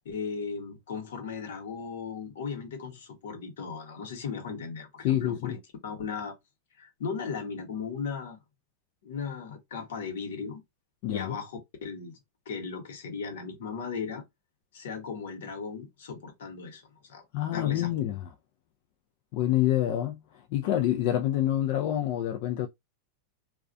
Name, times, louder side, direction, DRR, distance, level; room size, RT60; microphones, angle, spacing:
voice 1, 0.0-6.3 6.8-8.4 9.0-10.6 11.1-12.2 12.5-14.2 14.7-16.8 17.1-17.9, left 5 dB, 80° left, 1.1 m, -37 dB
voice 2, 5.0-5.6 11.0-11.4 17.3-18.3 19.3-20.2 20.5-22.7, left 12 dB, 55° left, 0.4 m, -27 dB
2.3 x 2.2 x 2.5 m
hypercardioid pair, 125°, 0 cm